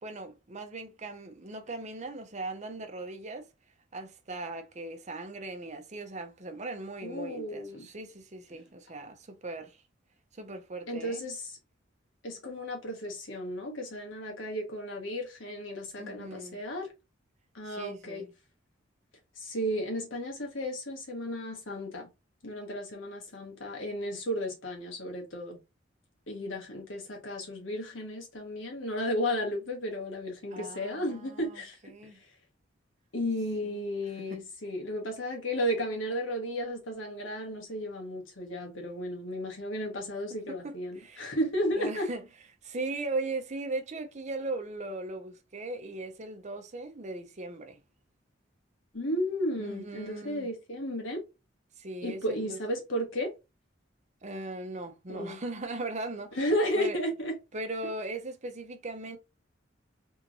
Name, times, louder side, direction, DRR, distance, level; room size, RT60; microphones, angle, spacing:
voice 1, 0.0-3.5 3.9-9.8 10.3-11.2 16.0-16.6 17.6-18.3 30.5-32.2 33.6-33.8 34.2-34.4 40.5-41.3 41.7-42.2 42.6-47.8 49.6-50.5 51.8-52.6 54.2-56.4 56.8-57.0 57.5-59.2, right 2 dB, 40° right, 0.7 m, -39 dB
voice 2, 7.0-7.9 10.9-11.6 12.2-16.9 17.5-18.2 19.4-22.1 22.4-25.6 26.3-31.8 33.1-42.1 48.9-51.2 52.0-53.3 55.1-55.4 56.3-57.3, equal, 80° left, 1.6 m, -33 dB
3.5 x 3.1 x 2.6 m
head